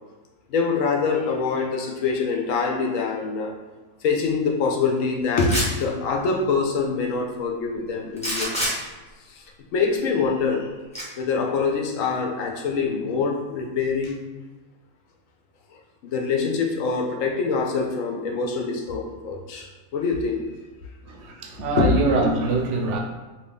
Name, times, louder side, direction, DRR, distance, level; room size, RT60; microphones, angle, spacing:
voice 1, 0.5-3.6 4.0-8.5 9.3-9.4 9.7-10.7 11.2-14.2 16.0-19.7 19.9-20.5 21.8-21.9, left 4 dB, 75° left, 1 dB, 1.0 m, -24 dB
sound 1, 5.4-5.8 8.2-8.7 10.9-11.0, equal, 5° left, 0.8 m, -26 dB
voice 2, 21.0-23.0, right 3 dB, 65° right, 2 dB, 0.8 m, -24 dB
2.8 x 2.7 x 3.4 m, 1.3 s
omnidirectional pair, 1.4 m